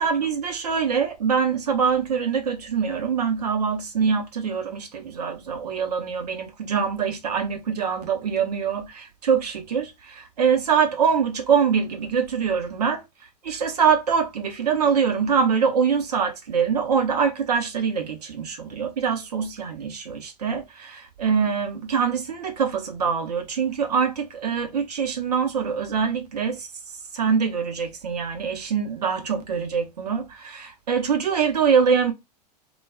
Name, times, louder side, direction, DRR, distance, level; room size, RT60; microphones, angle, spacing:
voice 1, 0.0-13.0 13.4-26.7 27.1-32.1, right 6 dB, 70° right, 0.8 m, -24 dB
2.4 x 2.2 x 3.3 m
figure-of-eight pair, 95°, 21 cm